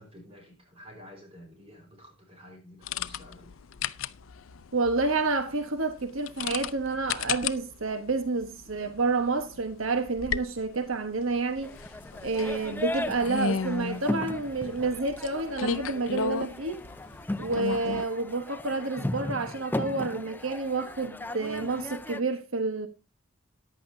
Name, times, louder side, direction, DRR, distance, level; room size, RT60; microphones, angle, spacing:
voice 1, 0.0-3.5, equal, 30° right, 4.7 m, -50 dB
sound 1, 2.8-18.0, left 5 dB, 85° left, 0.5 m, -35 dB
voice 2, 4.7-11.7 12.2-16.9 17.4-22.9, right 3 dB, 85° right, 1.2 m, -29 dB
sound 2, 11.6-22.2, left 1 dB, 10° left, 0.5 m, -37 dB
14.5 x 10.0 x 2.7 m
head